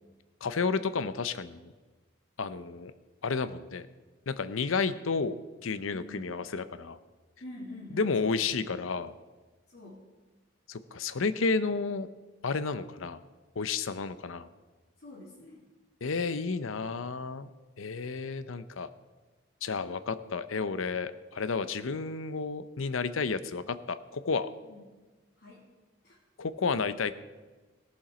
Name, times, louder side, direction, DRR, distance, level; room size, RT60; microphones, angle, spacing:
voice 1, 0.4-1.7 2.4-2.9 3.2-3.9 4.3-5.3 5.6-7.0 7.9-9.1 10.7-12.1 12.4-13.2 13.6-14.5 16.0-17.5 17.8-18.9 19.6-24.5 26.4-27.1, left 4 dB, 90° left, 14 dB, 0.6 m, -31 dB
voice 2, 5.9-6.3 7.4-8.7 9.7-10.0 15.0-15.6 24.6-24.8 25.4-25.7 26.0-26.2, left 2 dB, 60° left, -6 dB, 2.5 m, -46 dB
17.0 x 7.2 x 5.0 m, 1.3 s
head